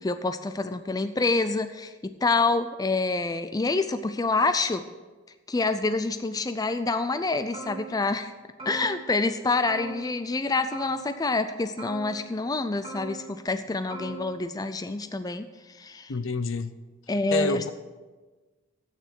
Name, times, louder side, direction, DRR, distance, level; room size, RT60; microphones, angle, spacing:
voice 1, 0.0-4.8 5.5-8.3 8.7-16.1 17.1-17.7, left 3 dB, 20° left, 0.4 m, -27 dB
sound 1, 7.5-8.2 8.6-9.3 9.7-10.4 10.7-11.5 11.8-12.5 12.8-13.6 13.9-14.4, right 4 dB, 25° right, 3.7 m, -41 dB
voice 2, 16.1-16.7 17.3-17.7, left 3 dB, 65° left, 0.7 m, -28 dB
12.0 x 9.1 x 6.2 m
head